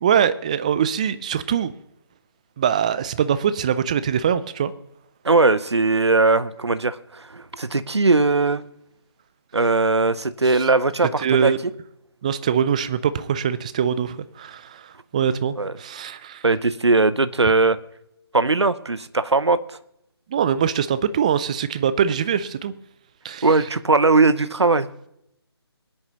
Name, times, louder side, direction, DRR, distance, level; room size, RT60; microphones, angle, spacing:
voice 1, 0.0-1.7 2.6-4.7 10.4-10.7 11.2-11.6 12.2-16.4 20.3-22.7 23.2-23.5, right 8 dB, 15° right, 15 dB, 0.3 m, -23 dB
voice 2, 5.2-8.6 9.5-11.5 15.6-15.7 16.4-17.8 18.3-19.6 23.4-24.9, right 3 dB, 85° right, 15 dB, 0.7 m, -19 dB
22.5 x 9.6 x 2.9 m, 0.79 s
figure-of-eight pair, 150°, 14 cm